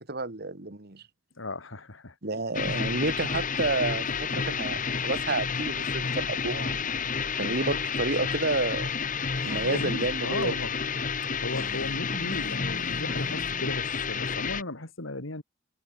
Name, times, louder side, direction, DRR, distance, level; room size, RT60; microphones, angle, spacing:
voice 1, 0.1-1.0 2.2-6.8 7.4-8.9 9.4-10.6, right 2 dB, 55° right, 1.8 m, -30 dB
voice 2, 1.4-2.1 2.6-2.8 9.6-10.7 11.2-15.4, left 2 dB, 90° left, 2.8 m, -36 dB
sound 1, 2.5-14.6, left 5 dB, 40° left, 1.5 m, -30 dB
Female speech woman speaking, 9.4-10.0 11.5-13.8, equal, 15° right, 5.1 m, -44 dB
head